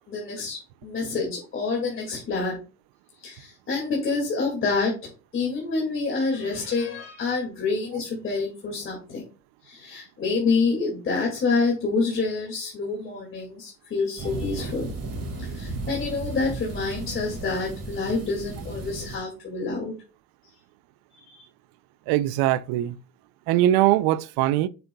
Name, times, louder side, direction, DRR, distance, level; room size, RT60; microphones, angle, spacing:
voice 1, 0.1-2.6 3.2-4.9 5.3-9.2 9.6-14.9 15.4-19.9 21.3-21.5, left 4 dB, 30° left, 2.2 m, -27 dB
sound 1, 14.2-19.2, right 2 dB, 40° right, 3.1 m, -34 dB
voice 2, 22.1-23.0 23.5-24.7, right 14 dB, 75° right, 0.6 m, -21 dB
7.6 x 6.9 x 2.3 m
cardioid pair, 140°, 38 cm